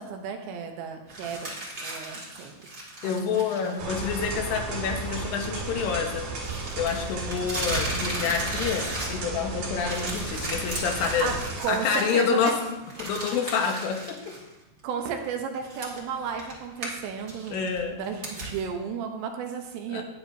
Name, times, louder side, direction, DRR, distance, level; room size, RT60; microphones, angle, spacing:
voice 1, 0.0-1.5 1.8-2.5 3.0-3.8 11.2-11.3 11.6-12.5 14.8-20.0, right 7 dB, 75° right, 4 dB, 2.8 m, -33 dB
sound 1, 1.1-3.8 4.1-4.2 6.4-9.4 9.7-14.4 14.8-14.9 15.6-18.6, right 1 dB, 35° right, 1.3 m, -35 dB
voice 2, 3.0-6.3 6.8-11.3 11.7-12.6 13.0-14.2 17.5-18.0 19.9-20.0, left 6 dB, 75° left, 3 dB, 2.8 m, -28 dB
sound 2, 3.8-11.6, right 3 dB, 60° right, 3.5 m, -34 dB
12.0 x 9.4 x 2.7 m, 0.98 s
omnidirectional pair, 5.1 m